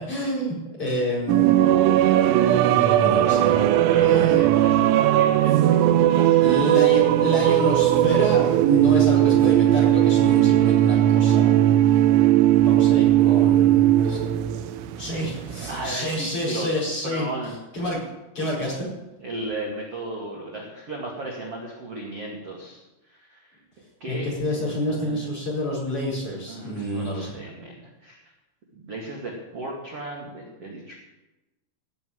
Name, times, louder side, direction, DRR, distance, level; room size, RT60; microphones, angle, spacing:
voice 1, 0.1-1.5 3.0-3.5 4.0-4.4 6.4-11.6 12.5-14.2 15.0-17.3 17.7-18.0 18.4-18.9 24.1-27.3, equal, 30° left, -4 dB, 5.3 m, -28 dB
sound 1, 1.3-16.0, right 12 dB, 85° right, 3.2 m, -18 dB
voice 2, 3.7-6.7 15.7-16.7 17.0-17.5 19.2-23.6 24.0-25.3 26.5-28.3 28.7-30.9, right 2 dB, 40° right, -2 dB, 2.3 m, -36 dB
16.5 x 7.0 x 9.5 m, 1.0 s
omnidirectional pair, 5.7 m